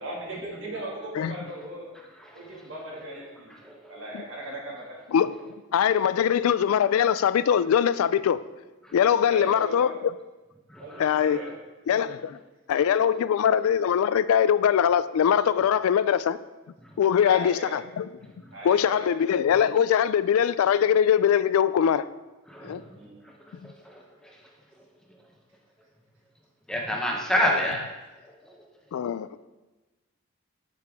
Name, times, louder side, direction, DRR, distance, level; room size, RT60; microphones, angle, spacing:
voice 1, 0.0-1.9 2.3-3.6 3.9-5.0 9.3-9.9 10.8-11.5 11.9-12.0 17.2-17.7 18.5-19.2 22.9-23.2, right 1 dB, 60° right, 2.2 m, -38 dB
voice 2, 5.7-8.4 8.9-10.1 11.0-11.4 11.9-12.4 12.7-16.4 17.0-18.1 18.6-22.1 22.6-22.8 27.4-27.6 28.9-29.3, left 8 dB, 90° left, 0.3 m, -22 dB
voice 3, 10.7-11.3 22.5-22.8 23.6-24.0 26.7-27.8, equal, 5° left, 0.9 m, -28 dB
8.2 x 6.7 x 3.5 m
head